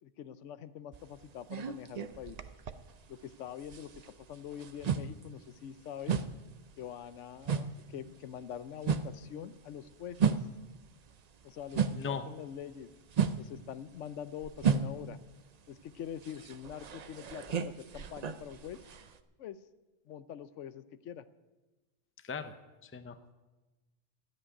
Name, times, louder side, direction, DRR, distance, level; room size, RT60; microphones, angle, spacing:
voice 1, 0.0-2.4 3.1-4.0 4.3-6.1 6.8-10.4 11.4-12.9 13.4-15.2 15.7-18.8 19.4-19.6 20.1-21.3, left 9 dB, 85° left, 13 dB, 1.0 m, -44 dB
sound 1, 0.9-3.3 3.6-12.2 12.5-19.2, right 6 dB, 50° right, 0.5 m, -34 dB
voice 2, 22.2-22.5 22.8-23.3, left 6 dB, 15° left, 10 dB, 0.4 m, -38 dB
12.5 x 7.8 x 10.0 m, 1.2 s
omnidirectional pair, 1.2 m